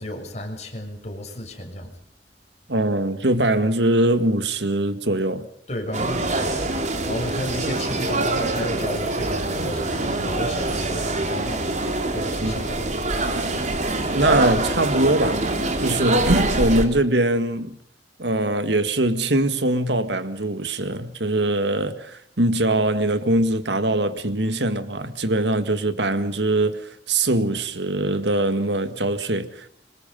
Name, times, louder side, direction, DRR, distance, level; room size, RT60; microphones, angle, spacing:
voice 1, 0.0-1.9 5.7-6.6 7.1-13.1, left 1 dB, 40° left, 6.6 m, -33 dB
voice 2, 2.7-5.5 12.4-12.5 14.1-15.4 15.8-17.8 18.2-29.7, right 1 dB, 75° right, 1.9 m, -22 dB
sound 1, 5.9-16.9, right 2 dB, 45° right, 3.5 m, -24 dB
26.0 x 25.0 x 5.4 m
head